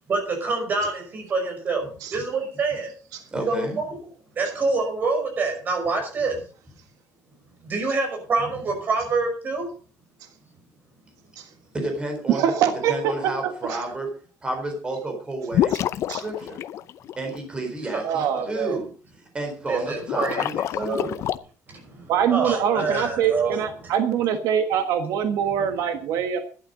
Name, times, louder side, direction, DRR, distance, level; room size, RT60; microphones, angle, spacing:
voice 1, 0.1-2.9 3.5-3.8 4.4-6.4 7.6-9.7 17.9-18.0 18.4-18.5 19.7-20.5 20.8-21.1 21.7-23.6, right 3 dB, 30° right, 3 dB, 5.5 m, -26 dB
voice 2, 3.3-3.8 11.7-12.4 12.9-14.1 14.4-15.7 16.2-16.6 17.2-18.9 19.3-21.2, right 2 dB, 15° right, 3 dB, 4.1 m, -31 dB
voice 3, 12.3-13.1 13.7-13.8 16.1-16.2 18.0-18.8 22.1-26.4, right 8 dB, 75° right, 7 dB, 1.5 m, -23 dB
sound 1, 15.5-17.4 20.0-21.4, left 11 dB, 50° left, 0.6 m, -27 dB
12.0 x 11.5 x 5.2 m, 0.39 s
cardioid pair, 175°, 6 cm